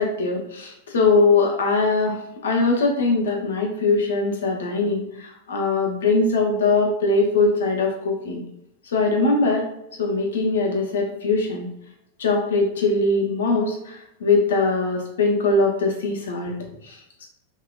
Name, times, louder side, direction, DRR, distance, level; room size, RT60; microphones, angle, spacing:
voice 1, 0.0-2.2 2.4-8.4 8.8-9.7 10.0-11.7 12.2-17.2, left 3 dB, 65° left, 1 dB, 0.6 m, -21 dB
3.0 x 2.1 x 2.2 m, 0.81 s
figure-of-eight pair, 90°, 0 cm